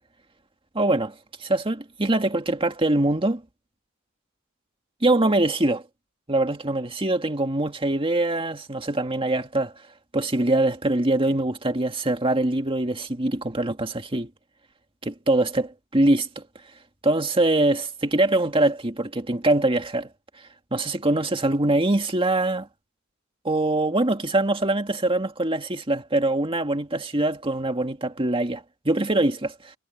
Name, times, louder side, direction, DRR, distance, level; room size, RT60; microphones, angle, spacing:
voice 1, 0.7-1.1 1.4-3.4 5.0-5.8 6.3-9.7 10.1-14.3 15.0-16.4 17.0-20.1 20.7-22.7 23.4-29.7, right 2 dB, 25° right, 2.1 m, -23 dB
head